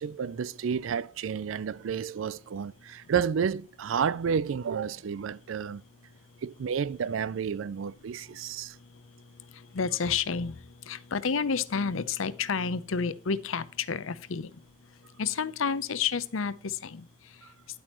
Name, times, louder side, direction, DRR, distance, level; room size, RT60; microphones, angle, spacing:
voice 1, 0.0-5.8 6.4-8.8, right 7 dB, 80° right, 0.4 m, -31 dB
voice 2, 9.7-10.5 10.9-14.5 15.2-17.0, left 6 dB, 90° left, 0.7 m, -30 dB
10.5 x 8.6 x 3.0 m
head